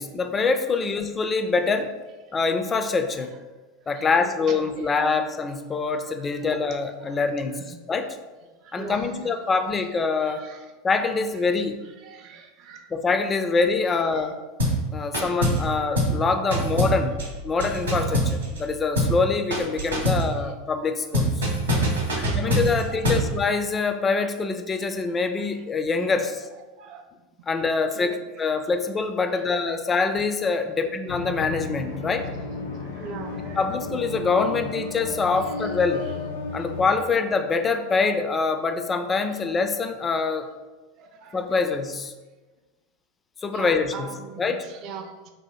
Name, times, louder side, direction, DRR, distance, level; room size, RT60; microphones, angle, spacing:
voice 1, 0.0-1.9 2.3-3.4 3.9-8.2 8.7-10.4 10.8-11.8 12.9-14.4 14.9-17.2 17.4-21.5 22.2-26.5 27.5-32.3 33.6-36.1 36.5-40.5 41.3-42.1 43.4-44.6, left 4 dB, 25° left, 7 dB, 0.4 m, -25 dB
voice 2, 3.9-4.6 6.6-6.7 7.1-7.2 8.6-9.2 10.2-10.6 12.0-12.9 14.2-14.3 20.0-20.5 22.0-22.1 22.9-23.2 26.8-27.0 27.9-28.2 32.8-33.6 34.4-34.5 35.4-35.7 41.0-41.4 43.5-45.1, right 5 dB, 45° right, 5 dB, 0.4 m, -41 dB
sound 1, 14.6-14.9 15.1-15.7 16.0-16.2 16.5-18.7 19.0-19.2 19.5-20.3 21.1-23.3, equal, 80° right, 0.8 m, -24 dB
sound 2, 31.1-36.9, left 4 dB, 75° left, 0.5 m, -34 dB
2.7 x 2.5 x 4.0 m, 1.2 s
hypercardioid pair, 85°, 0 cm